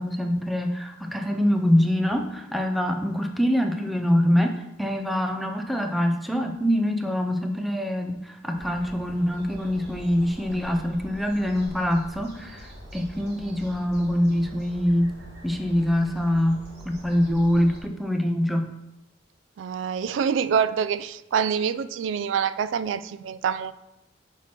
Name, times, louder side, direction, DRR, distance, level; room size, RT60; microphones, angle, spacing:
voice 1, 0.0-8.1 8.4-12.7 12.9-15.1 15.4-18.6, equal, ahead, 4 dB, 0.5 m, -24 dB
sound 1, 8.5-17.8, equal, 60° right, 1.4 m, -44 dB
voice 2, 19.6-23.7, right 7 dB, 75° right, 13 dB, 0.3 m, -26 dB
5.9 x 4.5 x 4.3 m, 0.87 s
head